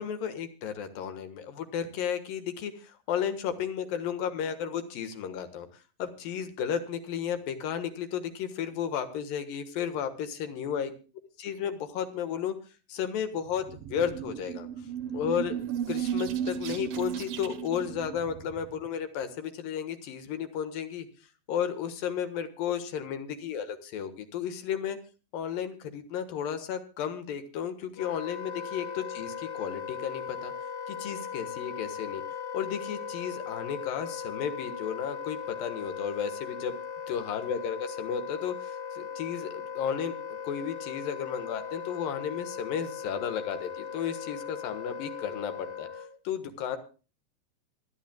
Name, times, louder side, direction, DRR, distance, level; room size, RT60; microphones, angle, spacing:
voice 1, 0.0-5.7 6.0-10.9 11.4-12.5 12.9-14.7 15.1-15.5 15.9-21.1 21.5-25.0 25.3-30.5 30.9-32.2 32.5-36.7 37.1-40.1 40.4-45.9 46.2-46.8, left 8 dB, 80° left, 9 dB, 3.2 m, -33 dB
sound 1, 13.4-18.9, right 9 dB, 75° right, 1.4 m, -35 dB
Wind instrument woodwind instrument, 28.0-46.2, left 7 dB, 65° left, 1.0 m, -38 dB
25.5 x 10.5 x 2.3 m, 0.35 s
omnidirectional pair, 4.0 m